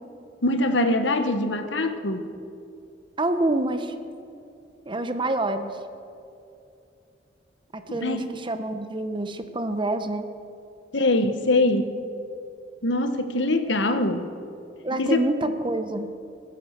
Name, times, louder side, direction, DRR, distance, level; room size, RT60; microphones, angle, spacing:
voice 1, 0.4-2.3 7.9-8.3 10.9-11.9 12.8-14.3 15.0-15.5, left 2 dB, 85° left, 8 dB, 1.3 m, -23 dB
voice 2, 3.2-3.9 4.9-5.8 7.7-10.3 14.8-16.1, right 2 dB, 30° right, 8 dB, 1.0 m, -27 dB
20.5 x 10.5 x 6.7 m, 2.6 s
head